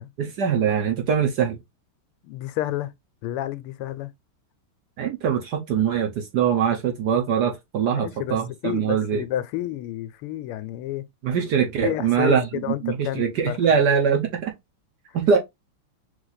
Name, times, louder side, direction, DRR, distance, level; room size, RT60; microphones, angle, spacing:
voice 1, 0.2-1.6 5.0-9.2 11.2-14.5 15.1-15.4, right 7 dB, 60° right, 1.1 m, -22 dB
voice 2, 2.2-2.9 3.2-4.1 7.8-8.4 8.6-11.1 11.8-13.6, left 14 dB, 85° left, 1.5 m, -30 dB
3.6 x 3.2 x 3.9 m
omnidirectional pair, 2.4 m